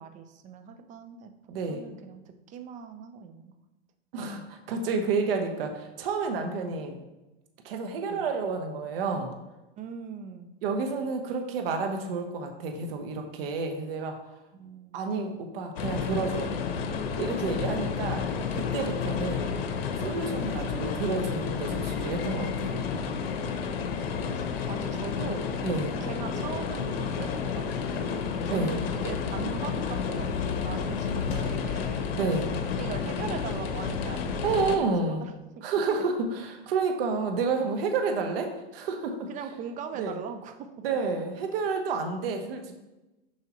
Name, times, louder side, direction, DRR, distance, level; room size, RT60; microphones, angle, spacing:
voice 1, 0.0-1.3 1.7-3.5 6.7-6.8 8.1-8.2 9.8-10.5 14.5-15.1 24.0-25.7 26.0-28.2 28.4-32.2 32.8-35.3 39.3-40.7, right 7 dB, 25° right, 7 dB, 0.6 m, -40 dB
voice 2, 1.5-1.9 4.1-7.0 7.6-9.3 10.6-14.1 14.9-16.5 17.2-18.2 18.5-19.5 20.0-22.8 25.6-25.9 28.5-28.7 32.1-32.5 34.4-35.3 35.6-39.3 40.0-40.1 40.8-42.7, right 4 dB, 70° right, 4 dB, 1.2 m, -30 dB
sound 1, 15.8-34.8, left 6 dB, 85° left, 1.0 m, -31 dB
sound 2, 28.5-31.9, left 3 dB, 25° left, 1.8 m, -43 dB
7.5 x 5.5 x 3.1 m, 1.0 s
supercardioid pair, 140°, 29 cm